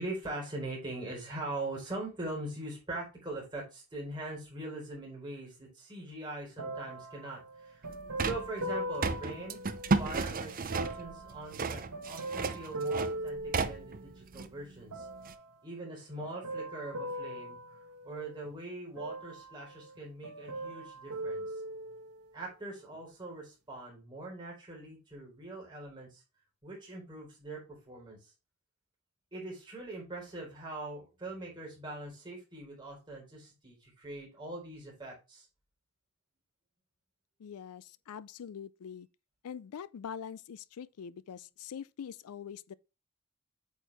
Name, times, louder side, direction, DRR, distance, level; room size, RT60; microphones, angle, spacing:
voice 1, 0.0-7.9 8.2-9.6 10.0-15.1 15.6-17.6 18.0-21.5 22.3-26.2 26.6-28.3 29.3-35.5, right 2 dB, 20° right, 4.0 m, -42 dB
sound 1, 6.6-10.2 10.7-14.2 14.9-15.6 16.2-18.5 19.0-20.0 20.2-22.3 22.9-23.0, right 1 dB, 80° right, 1.3 m, -40 dB
sound 2, 7.8-15.3, right 4 dB, 40° right, 0.6 m, -34 dB
voice 2, 37.4-39.1 39.4-42.7, left 7 dB, 85° left, 0.4 m, -44 dB
8.2 x 4.6 x 3.3 m
head